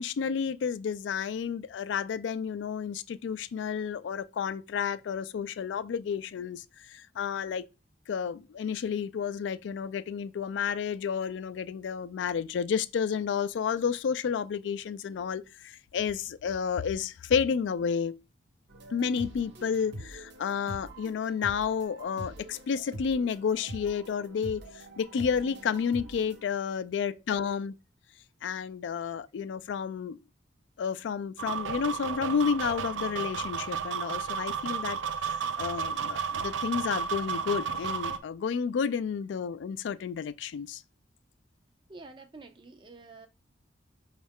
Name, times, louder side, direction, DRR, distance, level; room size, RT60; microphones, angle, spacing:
voice 1, 0.0-6.6 6.9-7.6 8.1-18.2 18.9-24.6 25.0-27.7 28.4-30.2 30.8-35.0 35.3-40.8, left 6 dB, 80° left, 0.3 m, -31 dB
sound 1, 18.7-26.4, right 1 dB, 65° right, 0.8 m, -44 dB
voice 2, 26.9-27.6 41.9-43.3, right 3 dB, 25° right, 0.4 m, -50 dB
sound 2, 31.4-38.2, right 6 dB, 90° right, 0.4 m, -33 dB
5.3 x 2.4 x 3.5 m
head